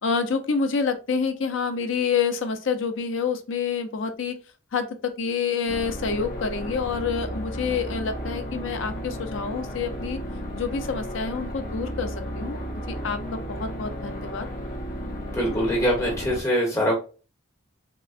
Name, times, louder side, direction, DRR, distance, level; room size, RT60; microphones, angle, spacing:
voice 1, 0.0-4.4 4.7-10.2 10.6-12.6 12.9-14.5, left 5 dB, 70° left, 7 dB, 0.5 m, -27 dB
sound 1, 5.7-16.4, equal, 40° left, 0.8 m, -33 dB
voice 2, 15.3-17.0, equal, 15° left, -2 dB, 1.0 m, -23 dB
3.7 x 2.1 x 2.4 m, 0.33 s
head